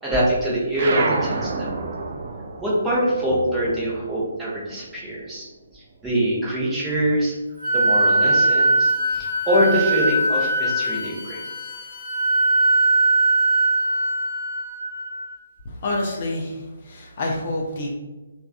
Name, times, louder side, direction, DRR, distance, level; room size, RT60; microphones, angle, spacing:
voice 1, 0.0-1.7 2.6-5.5 5.7-7.4 7.7-11.4, equal, 5° right, -7 dB, 0.7 m, -24 dB
sound 1, 0.7-5.6 5.9-7.4, right 3 dB, 40° right, 0.3 m, -30 dB
Wind instrument woodwind instrument, 7.6-15.4, right 2 dB, 15° left, 1.3 m, -21 dB
voice 2, 15.6-17.9, left 2 dB, 40° left, -1 dB, 0.4 m, -28 dB
3.3 x 2.2 x 2.4 m, 1.2 s
figure-of-eight pair, 135°, 0 cm